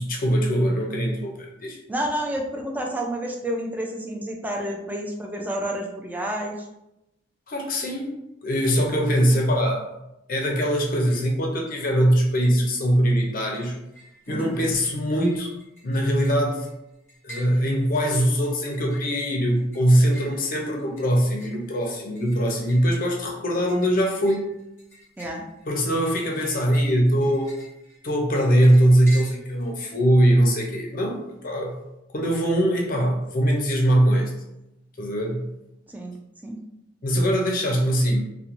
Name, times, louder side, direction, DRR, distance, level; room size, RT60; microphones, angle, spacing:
voice 1, 0.0-1.8 7.5-9.9 10.3-13.8 14.3-15.5 15.8-16.7 17.2-24.5 25.7-27.5 28.0-31.8 32.1-34.3 35.0-35.5 37.0-38.2, equal, 45° left, 1 dB, 0.5 m, -22 dB
voice 2, 1.9-6.5 14.3-14.6 25.2-25.4 35.9-36.1 36.4-36.6, right 1 dB, 10° right, 0 dB, 0.3 m, -29 dB
sound 1, 10.8-11.4 11.6-12.3 12.6-29.7, equal, 15° left, 0.7 m, -48 dB
2.9 x 2.2 x 2.5 m, 0.89 s
head